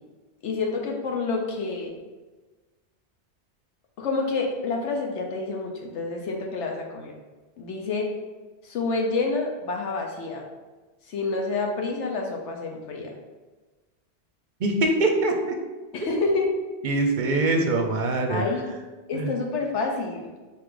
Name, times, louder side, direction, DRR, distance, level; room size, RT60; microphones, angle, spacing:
voice 1, 0.4-1.9 4.0-7.1 7.6-8.1 8.6-10.4 11.1-13.1 15.9-16.5 18.3-18.7 19.1-20.3, left 3 dB, 90° left, 1 dB, 1.1 m, -28 dB
voice 2, 14.6-15.6 16.8-18.4 19.1-19.3, right 2 dB, 55° right, 3 dB, 0.7 m, -23 dB
4.2 x 3.2 x 3.7 m, 1.3 s
omnidirectional pair, 1.2 m